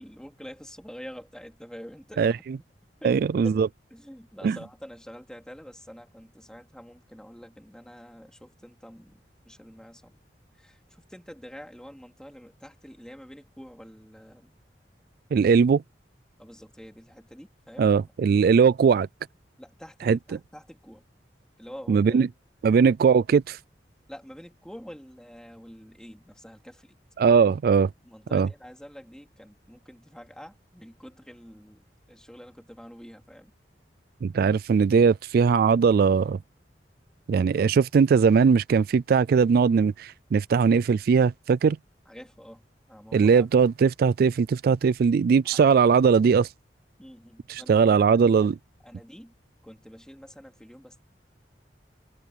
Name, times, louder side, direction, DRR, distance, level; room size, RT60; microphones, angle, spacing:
voice 1, 0.0-2.4 3.0-3.2 3.4-3.6 3.9-10.2 10.5-14.6 16.4-17.9 18.3-18.7 19.6-21.0 21.6-22.2 22.7-22.9 24.1-27.0 28.0-33.5 42.0-43.5 45.4-45.6 47.0-48.5 48.8-49.3 49.6-51.0, equal, 5° left, 3.2 m, -46 dB
voice 2, 3.0-3.7 4.4-4.6 15.3-15.8 17.8-19.1 20.1-20.2 21.9-22.3 22.6-23.6 27.2-27.9 28.3-28.5 34.2-36.4 37.3-41.8 43.1-46.5 47.5-48.6, right 6 dB, 55° right, 0.3 m, -20 dB
head